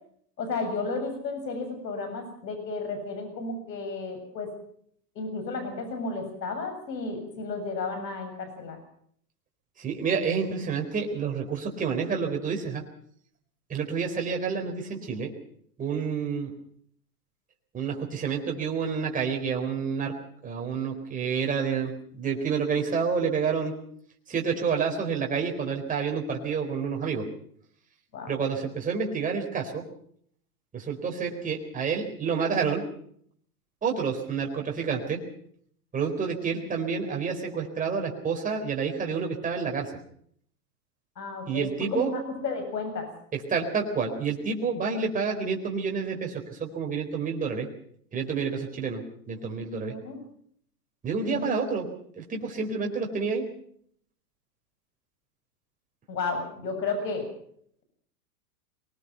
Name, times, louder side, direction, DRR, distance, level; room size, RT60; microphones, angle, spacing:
voice 1, 0.4-4.5 5.2-8.8 28.1-28.4 41.2-43.1 49.9-50.2 51.2-51.5 56.1-57.3, left 3 dB, 85° left, 7 dB, 7.2 m, -33 dB
voice 2, 9.8-12.8 13.7-15.3 15.8-16.5 17.7-20.1 20.4-23.7 24.3-27.2 28.3-29.8 30.7-32.8 33.8-35.2 35.9-39.9 41.5-42.1 43.3-47.7 48.1-49.9 51.0-51.9 52.2-53.5, right 5 dB, 15° right, 1 dB, 4.2 m, -29 dB
23.5 x 20.0 x 5.7 m, 0.64 s
hypercardioid pair, 130°, 49 cm